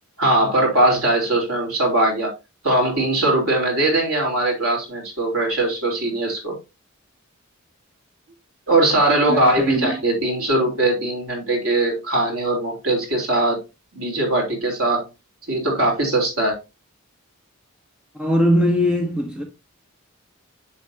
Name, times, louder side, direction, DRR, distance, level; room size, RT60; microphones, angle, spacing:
voice 1, 0.2-2.3 2.6-6.6 8.7-13.6 13.9-15.1 15.5-16.5, right 2 dB, 75° right, 3.7 m, -20 dB
voice 2, 9.3-10.0 18.2-19.4, equal, 5° right, 1.0 m, -20 dB
7.4 x 7.2 x 2.8 m
head